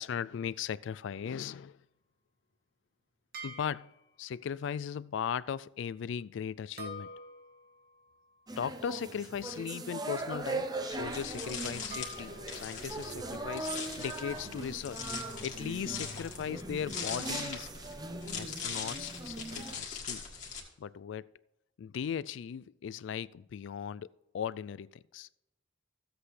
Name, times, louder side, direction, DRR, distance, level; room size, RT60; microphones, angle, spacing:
voice 1, 0.0-1.8 3.4-3.9 4.2-7.1 8.6-15.1 15.4-17.7 18.2-20.2 20.8-21.3 21.8-25.3, left 8 dB, 70° left, 0.3 m, -38 dB
sound 1, 3.3-4.4 6.8-9.9 11.9-12.8, equal, 50° right, 1.7 m, -48 dB
sound 2, 8.5-19.7, right 2 dB, 20° right, 0.7 m, -40 dB
sound 3, 10.9-20.6, left 5 dB, 40° left, 1.8 m, -42 dB
15.0 x 7.9 x 3.3 m
head